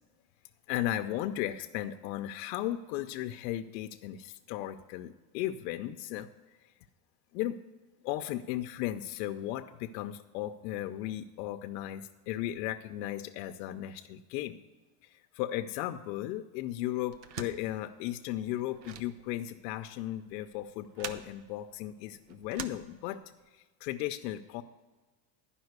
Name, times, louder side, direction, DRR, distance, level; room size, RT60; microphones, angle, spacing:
voice 1, 0.7-6.3 7.3-7.6 8.0-14.6 15.0-23.2 23.5-24.6, left 13 dB, 80° left, 7 dB, 0.6 m, -36 dB
sound 1, 17.1-23.5, right 7 dB, 85° right, 0.9 m, -46 dB
10.5 x 5.6 x 8.0 m, 1.3 s
cardioid pair, 170°, 49 cm